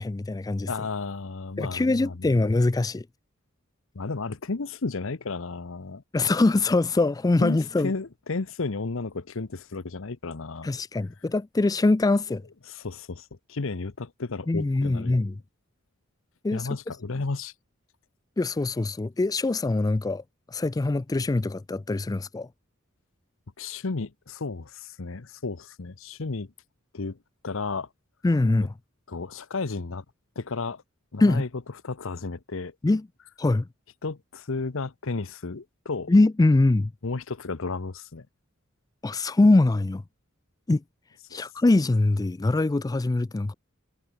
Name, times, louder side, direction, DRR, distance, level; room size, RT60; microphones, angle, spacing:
voice 1, 0.0-0.7 1.6-3.0 6.1-7.9 10.6-12.4 14.5-15.3 16.4-16.7 18.4-22.5 28.2-28.7 31.2-31.4 32.8-33.0 33.4-33.7 36.1-36.9 39.0-40.0 40.7-40.8 41.3-43.5, left 2 dB, 20° left, 0.4 m, -23 dB
voice 2, 0.7-2.5 3.9-6.0 7.4-10.7 12.7-15.2 16.5-17.5 23.6-26.5 26.9-27.2 27.4-27.9 29.1-30.0 30.4-30.8 31.1-31.5 31.8-32.7 34.0-36.1 37.0-38.3 41.3-41.4, left 3 dB, 65° left, 0.9 m, -33 dB
head